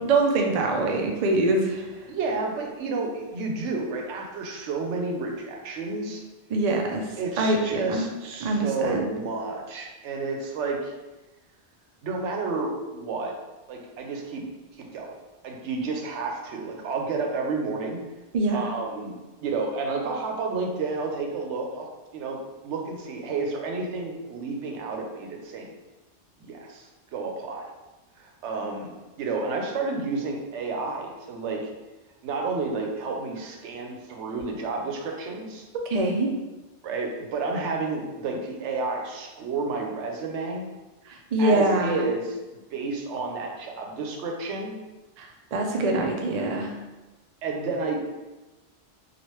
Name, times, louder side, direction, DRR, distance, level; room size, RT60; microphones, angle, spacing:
voice 1, 0.0-1.9 6.5-8.1 8.4-9.1 18.3-18.7 35.9-36.3 41.1-42.0 45.2-46.7, right 2 dB, 60° right, 1 dB, 0.4 m, -24 dB
voice 2, 2.1-6.2 7.2-10.9 12.0-13.3 13.7-14.4 14.8-15.1 15.4-18.0 18.5-19.2 19.4-21.9 22.1-25.7 26.4-27.7 28.2-31.6 32.2-35.6 36.8-40.7 41.4-44.7 47.4-48.0, right 3 dB, 85° right, 1 dB, 0.9 m, -31 dB
2.9 x 2.4 x 3.1 m, 1.1 s
omnidirectional pair, 1.2 m